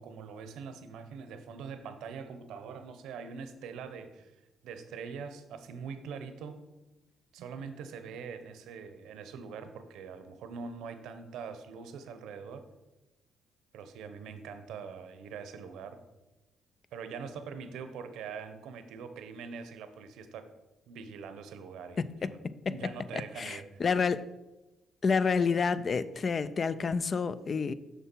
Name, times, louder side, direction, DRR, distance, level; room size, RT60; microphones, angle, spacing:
voice 1, 0.0-4.3 4.6-6.6 7.3-12.7 13.7-16.0 16.9-20.5 20.9-22.4 22.7-23.8, right 6 dB, 85° right, 0.7 m, -43 dB
voice 2, 22.0-22.3 23.4-24.2 25.0-27.7, left 5 dB, 40° left, 0.4 m, -29 dB
6.8 x 5.8 x 4.5 m
cardioid pair, 90°, 0 cm